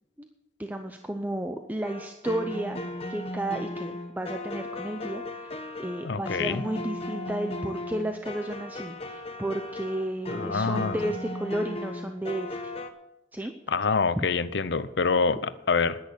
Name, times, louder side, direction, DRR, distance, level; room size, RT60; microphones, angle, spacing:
voice 1, 0.6-2.8 3.1-12.7 13.3-13.5 14.2-14.3, right 1 dB, 10° right, 5 dB, 0.6 m, -32 dB
sound 1, 1.8-12.9, left 1 dB, 35° left, 1.0 m, -36 dB
voice 2, 6.0-6.6 10.3-11.0 13.7-16.0, left 4 dB, 65° left, 14 dB, 0.7 m, -26 dB
10.5 x 10.5 x 6.9 m, 0.92 s
head